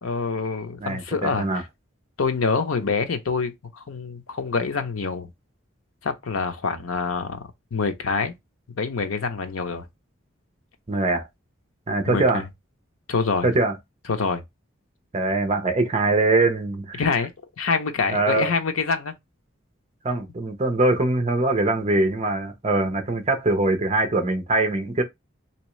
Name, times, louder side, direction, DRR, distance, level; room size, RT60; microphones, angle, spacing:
voice 1, 0.0-1.5 2.2-5.3 6.0-8.3 8.8-9.9 12.1-12.4 13.1-13.5 14.1-14.4 17.0-17.3 17.6-19.1, left 4 dB, 85° left, 0.7 m, -26 dB
voice 2, 0.8-1.6 10.9-11.3 11.9-12.4 13.4-13.8 15.1-17.0 18.1-18.5 20.0-25.0, right 2 dB, 30° right, 0.7 m, -22 dB
3.4 x 2.9 x 3.1 m
head